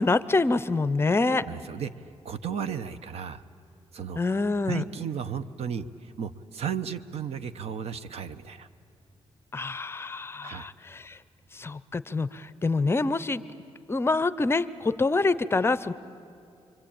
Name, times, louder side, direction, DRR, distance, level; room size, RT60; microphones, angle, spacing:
voice 1, 0.0-1.4 4.2-4.8 9.5-11.2 11.5-13.4 13.9-15.9, left 3 dB, 20° left, 15 dB, 0.6 m, -26 dB
voice 2, 1.3-3.4 3.9-4.2 4.7-8.7 10.4-10.7, right 7 dB, 70° right, 12 dB, 0.9 m, -34 dB
28.0 x 24.0 x 8.8 m, 2.5 s
cardioid pair, 135°, 11 cm